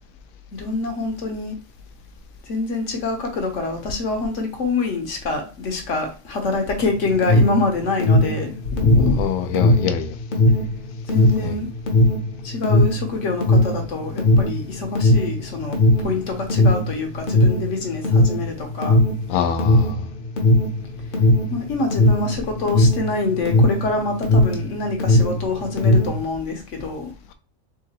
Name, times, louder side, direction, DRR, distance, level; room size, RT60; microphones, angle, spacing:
voice 1, 0.6-1.6 2.5-9.2 11.1-11.7 12.4-19.0 21.5-27.1, left 3 dB, 65° left, 1.3 m, -25 dB
Alarm, 7.0-24.7 24.9-26.2, left 1 dB, 45° left, 0.9 m, -17 dB
voice 2, 9.2-10.2 11.4-11.6 19.3-20.0, left 7 dB, 85° left, 1.0 m, -24 dB
3.7 x 3.7 x 2.9 m
omnidirectional pair, 1.4 m